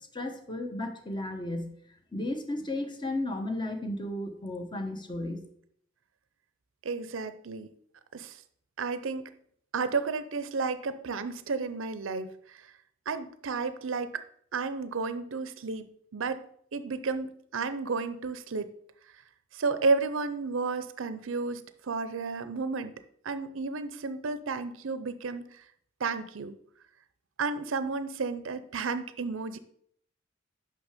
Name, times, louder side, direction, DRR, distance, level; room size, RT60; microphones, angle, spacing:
voice 1, 0.1-1.7 2.1-5.4, left 1 dB, 25° left, 6 dB, 1.0 m, -34 dB
voice 2, 6.8-7.7 8.1-8.4 8.8-9.3 9.7-12.7 13.1-14.2 14.5-16.4 16.7-18.7 19.5-23.0 23.2-25.6 26.0-26.6 27.4-29.6, right 4 dB, 70° right, 12 dB, 0.6 m, -32 dB
6.2 x 5.7 x 6.6 m, 0.66 s
head